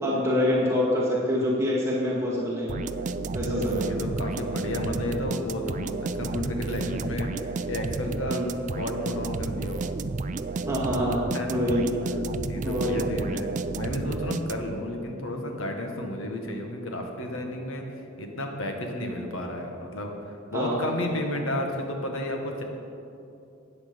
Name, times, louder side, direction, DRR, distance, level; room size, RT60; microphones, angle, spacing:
voice 1, 0.0-2.8 3.3-3.8 8.3-8.5 10.7-11.2 11.5-11.9 12.6-13.2 20.5-21.0, left 1 dB, 15° right, -6 dB, 1.8 m, -26 dB
sound 1, 2.7-14.9, right 3 dB, 40° right, 0.4 m, -32 dB
voice 2, 3.3-9.8 11.3-11.6 12.4-17.8 18.2-22.6, left 1 dB, 70° left, 3 dB, 1.5 m, -32 dB
13.5 x 8.9 x 5.2 m, 2.8 s
head